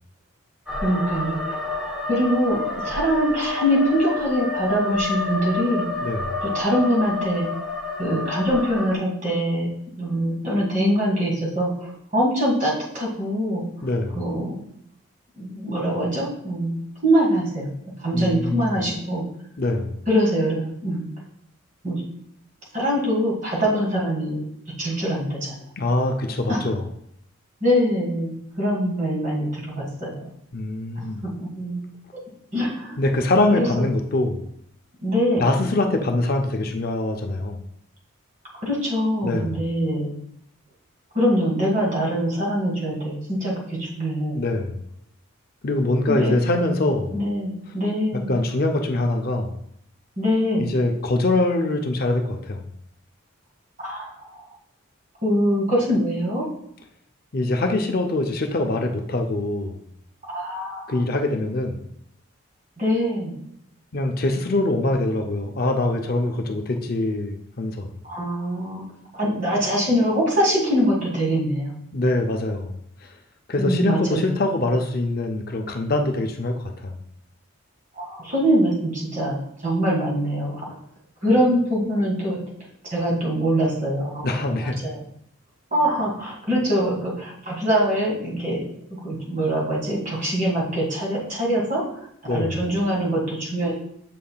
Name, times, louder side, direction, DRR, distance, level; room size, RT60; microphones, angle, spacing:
sound 1, 0.7-8.9, left 3 dB, 5° right, 1.6 m, -29 dB
voice 1, 0.8-1.6 2.1-2.6 2.8-5.9 6.4-7.4 8.0-9.7 10.0-13.6 14.1-14.6 15.4-16.8 17.0-17.7 18.0-19.2 20.1-21.1 21.8-22.0 22.7-24.4 24.8-25.6 26.5-26.6 27.6-30.3 31.4-31.8 32.5-33.0 33.5-33.7 35.0-35.4 38.6-40.1 41.1-44.4 46.1-46.3 47.1-48.4 50.2-50.7 53.8-54.1 55.2-56.4 60.3-61.0 62.8-63.3 68.0-68.9 69.1-71.7 73.6-74.3 78.0-80.6 81.2-82.4 82.9-84.3 84.6-85.0 85.7-88.6 89.0-91.8 92.2-93.7, equal, 40° right, -4 dB, 2.0 m, -23 dB
voice 2, 6.0-6.3 13.8-14.2 18.1-18.8 19.6-20.0 25.8-26.9 30.5-31.3 33.0-34.4 35.4-37.6 39.2-39.6 44.3-44.8 45.6-47.2 48.3-49.5 50.6-52.6 57.3-59.8 60.9-61.8 63.9-67.9 71.9-72.8 73.5-76.9 84.2-84.7 92.3-92.5, left 2 dB, 45° left, 3 dB, 0.5 m, -23 dB
7.5 x 5.4 x 2.3 m, 0.72 s
head